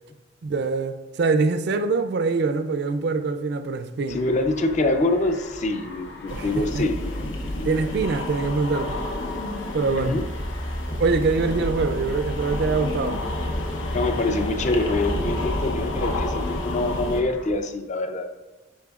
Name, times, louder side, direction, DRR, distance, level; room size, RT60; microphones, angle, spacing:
voice 1, 0.4-4.2 6.3-6.5 6.7-6.8 7.6-9.0 9.7-10.2 11.0-13.2, right 4 dB, 60° right, 0.4 m, -24 dB
sound 1, 4.1-17.5, left 1 dB, 60° left, 1.5 m, -37 dB
voice 2, 4.1-7.0 9.8-10.2 13.9-18.3, left 2 dB, 40° left, 0.4 m, -25 dB
sound 2, 6.3-17.2, left 1 dB, 90° left, 0.8 m, -30 dB
10.5 x 4.5 x 2.4 m
head